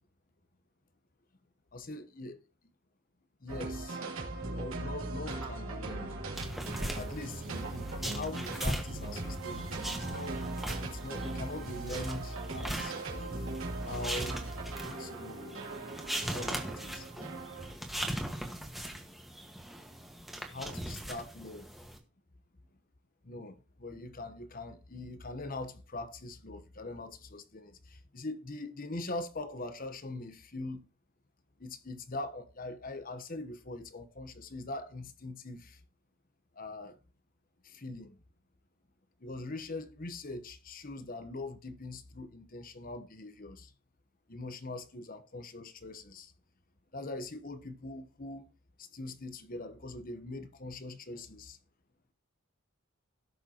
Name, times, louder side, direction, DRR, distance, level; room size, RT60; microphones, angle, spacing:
voice 1, 1.7-2.4 3.4-4.0 4.5-6.1 6.9-10.4 10.8-13.5 13.8-14.4 15.0-15.7 16.3-17.1 20.5-21.7 23.2-30.8 31.6-35.8 36.5-37.0 37.6-38.2 39.2-43.7 44.3-46.3 46.9-48.5 48.8-51.6, left 2 dB, 40° left, 1.0 m, -42 dB
sound 1, 3.5-17.7, right 2 dB, 70° right, 2.7 m, -39 dB
sound 2, 6.3-22.0, right 1 dB, ahead, 1.5 m, -40 dB
17.5 x 6.6 x 3.0 m
head